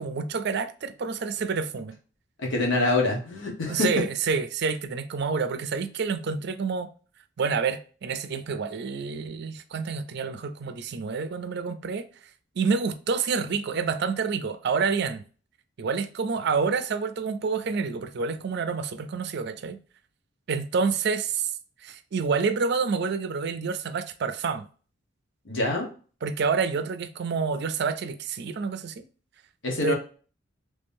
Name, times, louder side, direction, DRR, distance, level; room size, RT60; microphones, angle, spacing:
voice 1, 0.0-2.0 3.7-6.9 7.4-12.1 12.6-15.2 15.8-19.8 20.5-21.5 21.8-24.7 26.2-29.1 29.8-29.9, right 5 dB, 60° right, 0.4 m, -28 dB
voice 2, 2.4-3.9 25.5-25.9 29.6-29.9, left 2 dB, 80° left, 1.2 m, -25 dB
3.6 x 3.2 x 2.6 m
head